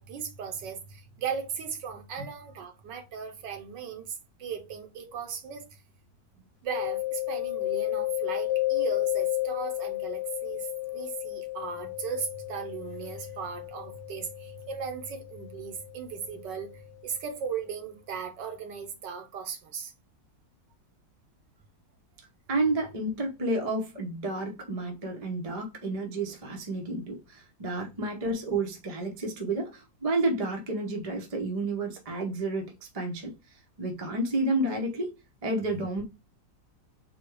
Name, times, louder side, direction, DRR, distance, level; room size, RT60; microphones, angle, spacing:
voice 1, 0.0-5.7 6.3-10.7 10.9-19.9, right 7 dB, 75° right, 1.5 m, -37 dB
Mallet percussion, 6.7-16.3, left 18 dB, 75° left, 1.3 m, -32 dB
voice 2, 22.5-33.3 33.8-35.1 35.4-36.0, right 2 dB, 35° right, 0.6 m, -30 dB
4.3 x 2.3 x 4.6 m
omnidirectional pair, 2.0 m